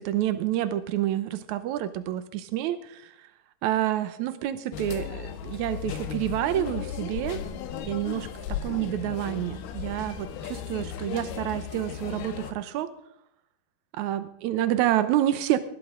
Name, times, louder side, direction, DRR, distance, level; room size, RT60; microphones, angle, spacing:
voice 1, 0.0-3.1 3.6-7.4 7.8-8.3 8.6-12.9 13.9-15.6, right 12 dB, 85° right, 12 dB, 1.7 m, -28 dB
sound 1, 4.7-12.5, left 9 dB, 85° left, 3.1 m, -36 dB
20.0 x 14.5 x 3.7 m, 0.77 s
omnidirectional pair, 4.3 m